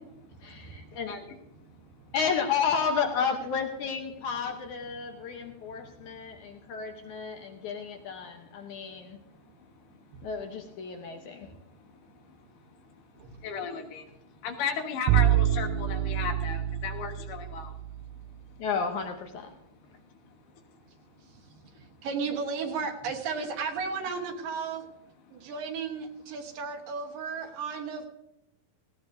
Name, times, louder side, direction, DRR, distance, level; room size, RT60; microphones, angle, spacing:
voice 1, 0.4-1.2 2.1-9.2 10.2-11.5 18.6-19.5, left 6 dB, 70° left, 4 dB, 2.0 m, -32 dB
voice 2, 5.1-5.5 5.7-6.3 10.1-10.3 13.2-13.3 21.2-24.9 25.3-28.1, right 5 dB, 70° right, 4 dB, 2.8 m, -35 dB
voice 3, 13.4-14.0 14.4-17.7, left 6 dB, 90° left, 4 dB, 3.4 m, -34 dB
Bowed string instrument, 15.1-18.1, right 12 dB, 85° right, 2.5 m, -26 dB
18.5 x 16.5 x 2.6 m, 0.85 s
omnidirectional pair, 4.4 m